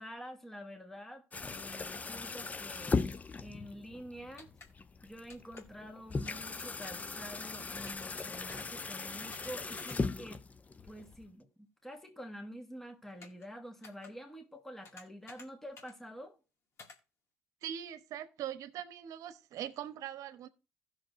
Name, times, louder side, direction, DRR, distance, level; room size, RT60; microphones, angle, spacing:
voice 1, 0.0-3.0 3.4-4.5 5.0-10.4 10.8-16.4, equal, 5° left, 1.4 m, -48 dB
sound 1, 1.3-11.3, left 4 dB, 25° left, 0.5 m, -39 dB
sound 2, 4.4-4.7 5.3-5.6 6.3-6.5 6.8-7.1 7.9-8.1 8.5-8.7 9.3-9.5 9.8-10.0 13.2-13.5 13.8-14.1 14.9-15.5 15.8-15.9 16.8-17.0, left 3 dB, 45° left, 2.2 m, -52 dB
voice 2, 17.6-20.5, right 10 dB, 60° right, 1.0 m, -41 dB
16.0 x 6.4 x 2.6 m
supercardioid pair, 80°, 6 cm